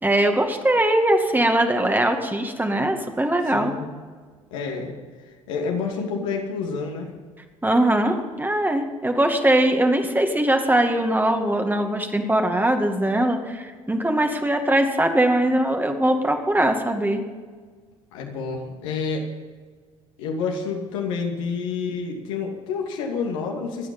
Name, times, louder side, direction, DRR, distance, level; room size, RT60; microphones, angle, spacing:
voice 1, 0.0-3.7 7.6-17.2, right 1 dB, 10° right, 4 dB, 2.2 m, -21 dB
voice 2, 3.5-3.9 4.5-5.0 5.5-7.1 18.1-19.3 20.2-23.9, left 5 dB, 70° left, 1 dB, 2.6 m, -28 dB
24.0 x 9.3 x 5.5 m, 1.5 s
figure-of-eight pair, 60°, 17 cm